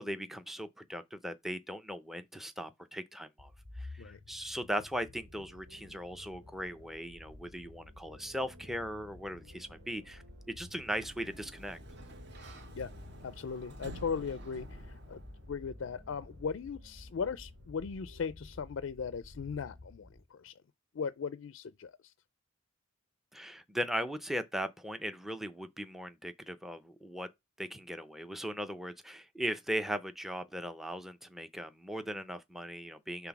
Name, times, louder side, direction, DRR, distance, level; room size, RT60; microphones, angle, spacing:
voice 1, 0.0-3.5 3.8-11.8 23.3-27.3 27.6-33.3, equal, ahead, 0.5 m, -38 dB
sound 1, 3.4-20.3, left 1 dB, 80° right, 2.7 m, -52 dB
Sliding door, 10.6-15.5, right 1 dB, 55° right, 1.2 m, -51 dB
voice 2, 13.2-15.2 15.5-20.5 20.9-22.1, left 6 dB, 65° left, 0.4 m, -38 dB
5.9 x 3.5 x 5.8 m
head